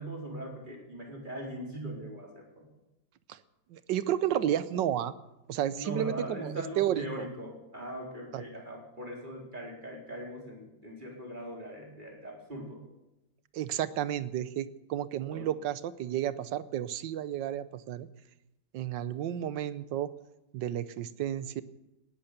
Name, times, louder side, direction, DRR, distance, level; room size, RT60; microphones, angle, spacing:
voice 1, 0.0-2.7 4.4-4.8 5.7-12.8 15.3-15.5, right 1 dB, 25° right, -1 dB, 4.3 m, -40 dB
voice 2, 3.7-5.1 5.5-7.3 8.3-8.4 13.5-18.1 18.7-20.1 20.5-21.6, right 11 dB, 85° right, 15 dB, 1.4 m, -32 dB
18.5 x 11.5 x 6.8 m, 0.93 s
omnidirectional pair, 1.9 m